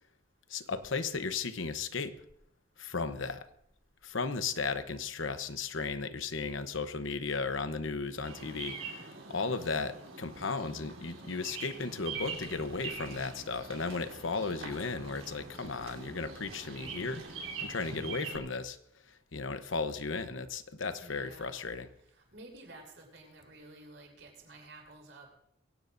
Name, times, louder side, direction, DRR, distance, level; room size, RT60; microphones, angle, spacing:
voice 1, 0.5-2.2 2.8-3.4 4.0-18.8 19.3-21.9, left 4 dB, 75° left, 10 dB, 0.9 m, -35 dB
Bird vocalization bird call bird song, 8.2-18.4, right 4 dB, 85° right, 3.5 m, -44 dB
Dark Ambient, 12.1-17.7, equal, 20° right, 1.9 m, -59 dB
voice 2, 20.9-21.6 22.1-25.4, right 2 dB, 65° right, 0 dB, 6.2 m, -52 dB
23.0 x 17.0 x 2.6 m, 0.74 s
head